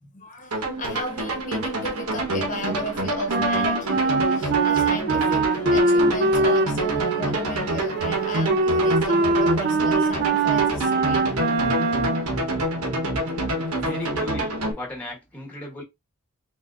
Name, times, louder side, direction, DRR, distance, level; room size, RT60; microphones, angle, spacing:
voice 1, 0.0-11.3 13.7-13.8 15.5-15.7, left 1 dB, 35° left, 1.0 m, -35 dB
sound 1, 0.5-14.7, right 1 dB, 90° right, 1.3 m, -27 dB
Wind instrument woodwind instrument, 3.3-12.3, right 3 dB, 50° right, 0.5 m, -22 dB
voice 2, 13.8-15.8, left 1 dB, 5° left, 1.1 m, -36 dB
4.1 x 3.5 x 2.5 m
head